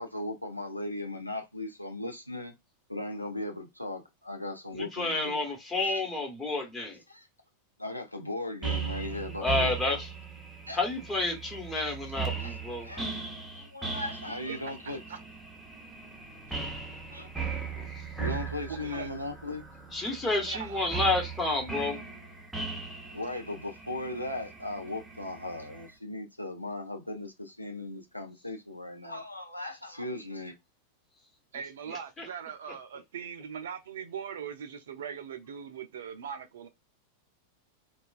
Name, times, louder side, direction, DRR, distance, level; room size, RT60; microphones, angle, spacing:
voice 1, 0.0-2.5 2.9-5.4 5.8-6.0 7.1-7.3 7.8-10.0 10.7-10.8 12.4-12.5 12.9-13.1 13.6-15.0 17.1-17.3 18.2-19.6 23.1-30.5, left 2 dB, 90° left, 0.4 m, -37 dB
voice 2, 4.7-7.0 9.4-10.1 10.7-12.9 17.8-18.2 19.9-22.0 31.9-32.3, left 2 dB, 15° left, 1.0 m, -30 dB
sound 1, 8.6-25.9, right 5 dB, 5° right, 0.6 m, -38 dB
voice 3, 14.5-15.2 18.7-19.1 20.4-21.0 31.5-36.7, right 7 dB, 60° right, 0.4 m, -40 dB
2.3 x 2.2 x 2.3 m
figure-of-eight pair, 90°, 0 cm